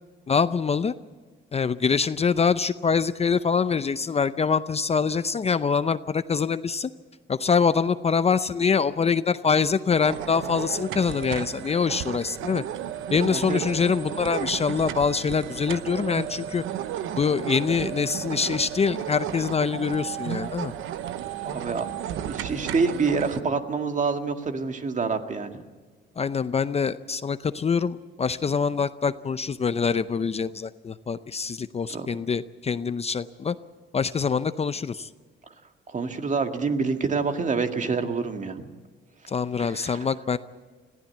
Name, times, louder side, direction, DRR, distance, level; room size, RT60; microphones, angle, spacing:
voice 1, 0.3-0.9 1.5-6.9 7.3-12.6 13.1-16.6 17.1-20.7 26.2-33.6 33.9-35.1 39.3-40.4, left 5 dB, 30° left, 13 dB, 0.6 m, -24 dB
sound 1, 10.0-23.4, right 10 dB, 85° right, 0.9 m, -33 dB
voice 2, 13.3-13.6 21.4-21.9 22.2-25.6 31.9-32.1 35.9-38.6 39.6-40.0, right 4 dB, 40° right, 6 dB, 1.9 m, -27 dB
21.5 x 15.0 x 8.5 m, 1.4 s
cardioid pair, 90°, 20 cm